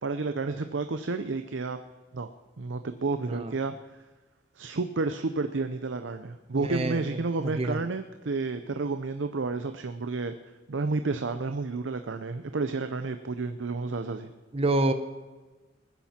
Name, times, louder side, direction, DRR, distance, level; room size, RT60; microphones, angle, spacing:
voice 1, 0.0-1.8 2.1-3.7 4.6-10.3 10.7-14.3, right 3 dB, 85° right, 8 dB, 0.7 m, -31 dB
voice 2, 6.5-7.0 7.4-7.8 14.5-14.9, right 2 dB, 30° right, 8 dB, 0.7 m, -27 dB
20.0 x 10.0 x 4.4 m, 1.2 s
head